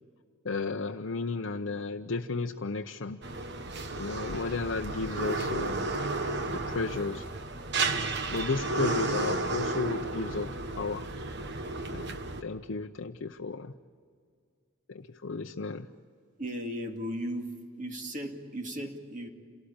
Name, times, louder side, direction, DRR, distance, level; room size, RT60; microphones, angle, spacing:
voice 1, 0.4-3.2 4.0-5.8 6.5-7.3 8.3-11.1 11.9-12.1 12.4-13.7 14.9-15.9, left 4 dB, 65° left, 4 dB, 0.7 m, -33 dB
sound 1, 3.2-12.4, right 2 dB, 55° right, 1.3 m, -33 dB
voice 2, 16.4-19.3, equal, 40° right, 4 dB, 2.4 m, -36 dB
28.0 x 18.0 x 8.8 m, 2.2 s
head